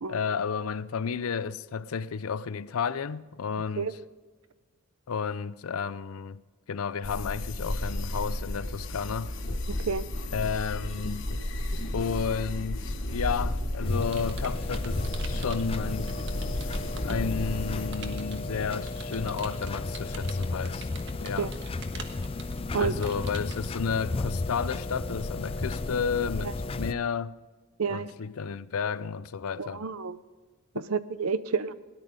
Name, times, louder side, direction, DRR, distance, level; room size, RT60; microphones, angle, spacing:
voice 1, 0.1-4.0 5.1-6.4 6.7-9.3 10.3-11.3 11.9-16.1 17.0-20.9 21.2-21.5 22.8-27.3 27.9-29.8, left 6 dB, 90° left, 0.5 m, -32 dB
sound 1, 7.0-17.9, left 1 dB, 65° left, 1.3 m, -33 dB
voice 2, 9.7-10.1 21.4-21.5 22.7-23.0 27.8-28.1 29.6-30.2 30.9-31.7, right 5 dB, 85° right, 0.7 m, -29 dB
Computer keyboard, 13.5-17.3 17.9-23.7, right 5 dB, 60° right, 1.4 m, -46 dB
sound 2, 13.8-26.9, left 3 dB, 25° left, 0.4 m, -34 dB
18.0 x 11.0 x 5.1 m
head